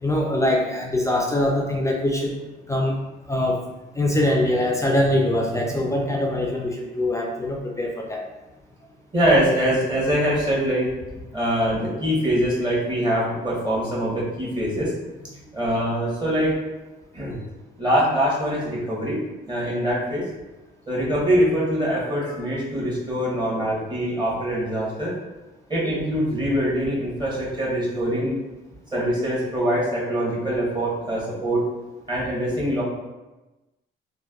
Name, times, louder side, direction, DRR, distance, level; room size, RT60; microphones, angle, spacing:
voice 1, 0.0-2.4 2.7-3.0 3.3-3.6 4.0-8.2, left 1 dB, 15° left, -1 dB, 0.3 m, -23 dB
voice 2, 9.1-10.9 11.3-14.9 15.5-16.6 17.1-17.4 17.8-19.2 19.5-20.2 20.9-25.1 25.7-28.4 28.9-31.6 32.1-32.8, equal, 20° right, -6 dB, 1.2 m, -23 dB
3.1 x 2.2 x 2.3 m, 1.1 s
cardioid pair, 90°, 20 cm